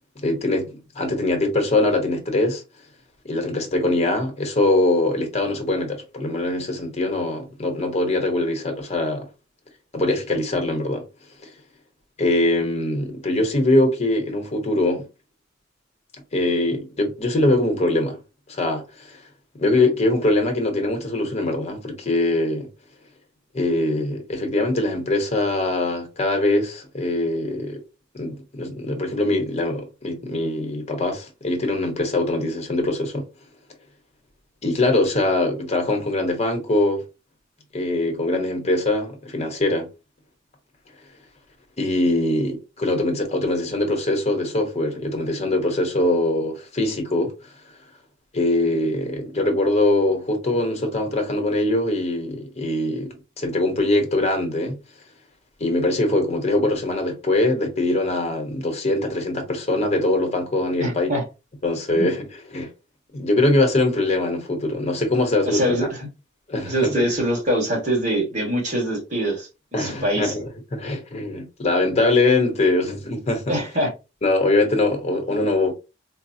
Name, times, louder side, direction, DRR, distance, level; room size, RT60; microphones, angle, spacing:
voice 1, 0.2-2.6 3.2-9.3 9.9-11.0 12.2-15.0 16.3-18.2 18.5-19.2 19.5-22.7 23.5-27.8 28.1-33.3 34.6-37.0 37.7-39.9 41.8-47.3 48.3-54.8 55.6-61.1 61.6-62.3 62.5-62.7 63.1-65.8 66.5-67.0 69.7-73.6 74.2-75.7, left 2 dB, 35° left, 0.9 m, -22 dB
voice 2, 60.8-61.2 61.9-62.1 65.4-66.1 66.6-69.5 69.8-70.3 73.5-73.9, right 1 dB, 40° right, 1.6 m, -23 dB
4.0 x 2.1 x 2.6 m
head